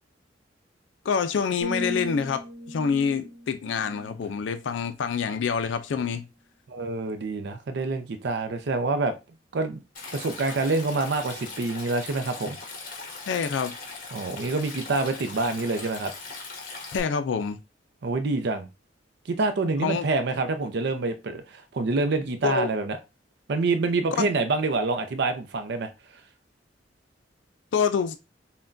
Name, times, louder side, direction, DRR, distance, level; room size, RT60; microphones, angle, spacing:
voice 1, 1.1-6.3 13.3-13.7 16.9-17.6 19.8-20.1 22.4-22.7 24.2-24.3 27.7-28.2, left 6 dB, 80° left, 0.4 m, -26 dB
sound 1, 1.6-5.5 6.0-6.3, equal, 80° right, 1.0 m, -38 dB
voice 2, 6.7-9.1 9.5-9.8 10.1-12.6 14.1-16.1 18.0-18.6 19.3-23.0 23.5-25.9, right 3 dB, 65° right, 0.5 m, -26 dB
Stream, 9.9-17.0, left 4 dB, 50° left, 1.2 m, -40 dB
5.6 x 2.2 x 2.5 m
head